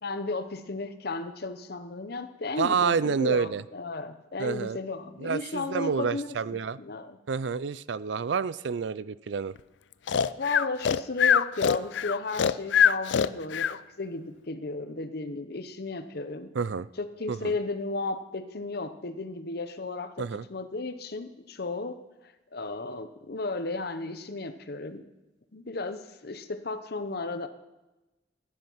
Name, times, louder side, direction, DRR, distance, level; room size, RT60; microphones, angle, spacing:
voice 1, 0.0-7.2 10.4-16.5 17.0-22.0 22.5-25.0 25.5-27.5, left 3 dB, 60° left, 10 dB, 0.9 m, -34 dB
voice 2, 2.6-3.6 4.4-4.8 5.2-6.8 7.3-9.6 16.5-16.9 17.3-17.5 20.2-20.5, right 5 dB, 70° right, 18 dB, 0.4 m, -28 dB
Breathing, 10.1-13.8, left 8 dB, 75° left, 0.4 m, -23 dB
15.0 x 11.0 x 5.7 m, 1.0 s
head